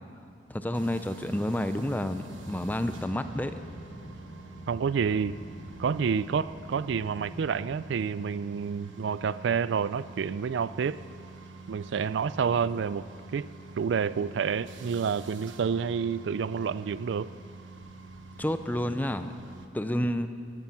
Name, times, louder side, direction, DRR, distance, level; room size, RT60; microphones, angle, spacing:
voice 1, 0.5-3.5 18.4-19.3 19.7-20.3, left 1 dB, 10° left, 10 dB, 0.5 m, -29 dB
sound 1, 0.7-19.7, right 3 dB, 85° right, 1.1 m, -47 dB
sound 2, 2.3-8.1, equal, 50° left, 1.3 m, -47 dB
voice 2, 4.7-5.4 5.8-11.0 11.7-13.0 13.3-13.5 13.8-17.3, right 6 dB, 70° right, 17 dB, 0.3 m, -29 dB
15.0 x 13.0 x 6.1 m, 2.4 s
head